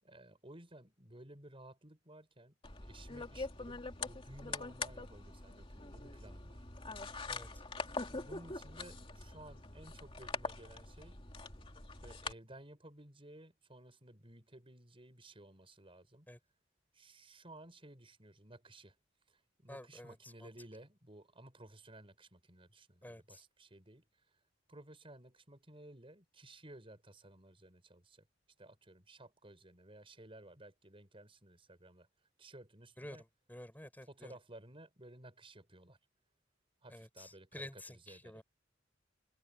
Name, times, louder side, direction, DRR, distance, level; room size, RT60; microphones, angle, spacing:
voice 1, 0.0-6.6 7.8-11.2 12.0-16.3 16.9-19.0 19.3-24.3 24.7-28.3 28.6-32.1 32.4-33.2 34.0-36.0 36.8-38.4, right 1 dB, 30° right, 6.5 m, -56 dB
sound 1, 2.6-12.3, left 3 dB, 30° left, 2.8 m, -44 dB
voice 2, 19.7-20.5 23.0-23.4 33.0-33.2 33.5-34.3 36.9-38.4, left 1 dB, 10° left, 5.5 m, -50 dB
head